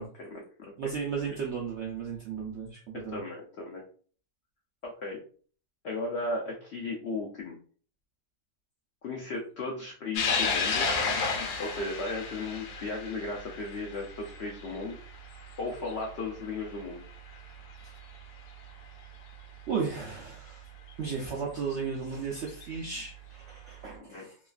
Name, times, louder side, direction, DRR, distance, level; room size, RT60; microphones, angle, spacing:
voice 1, 0.0-0.7 1.3-1.4 2.9-3.8 4.8-5.2 5.8-7.6 9.0-10.9 11.6-15.0 15.6-17.0 23.9-24.3, left 3 dB, 85° left, 0 dB, 0.5 m, -36 dB
voice 2, 0.8-3.2 17.8-17.9 19.7-20.7 21.0-24.4, right 5 dB, 75° right, -1 dB, 0.6 m, -35 dB
sound 1, 10.1-16.8 17.3-17.4 18.6-18.7 20.9-21.0 22.4-22.6, left 4 dB, 65° left, 1.0 m, -32 dB
2.9 x 2.4 x 2.3 m, 0.43 s
omnidirectional pair, 1.7 m